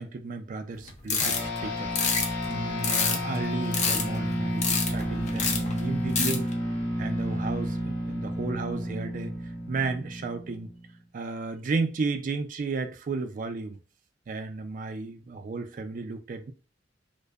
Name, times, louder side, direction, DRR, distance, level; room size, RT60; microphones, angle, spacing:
voice 1, 0.0-1.9 2.5-6.5 7.0-9.3 9.7-10.7 11.1-13.8 14.3-16.5, right 3 dB, 45° right, 0.3 m, -33 dB
sound 1, 0.9-1.6 1.9-3.4 3.7-4.3 4.6-5.0 5.3-5.8 6.1-6.5, left 5 dB, 40° left, 0.4 m, -26 dB
sound 2, 1.2-10.9, equal, 90° left, 1.2 m, -31 dB
2.5 x 2.2 x 2.3 m
head